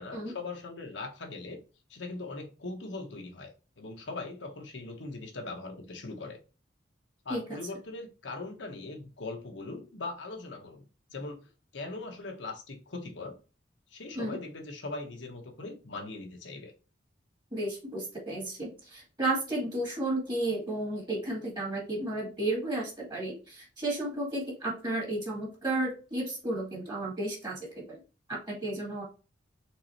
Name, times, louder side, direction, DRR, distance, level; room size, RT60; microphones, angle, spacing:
voice 1, 0.0-1.6 1.9-6.4 7.2-11.5 11.7-13.4 13.9-16.7, left 3 dB, 80° left, 1.2 m, -40 dB
voice 2, 17.5-28.0 28.3-29.0, right 2 dB, 25° right, 2.1 m, -33 dB
4.8 x 3.7 x 3.0 m
head